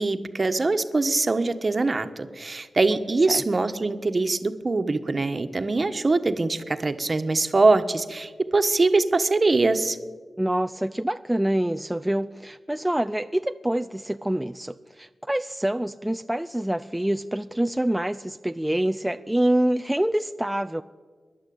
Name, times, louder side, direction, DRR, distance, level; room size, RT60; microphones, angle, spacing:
voice 1, 0.0-10.0, right 3 dB, 40° right, 9 dB, 1.4 m, -23 dB
voice 2, 10.4-20.8, right 1 dB, 10° right, 9 dB, 0.5 m, -26 dB
26.5 x 11.5 x 8.7 m, 1.5 s
cardioid pair, 75°, 0 cm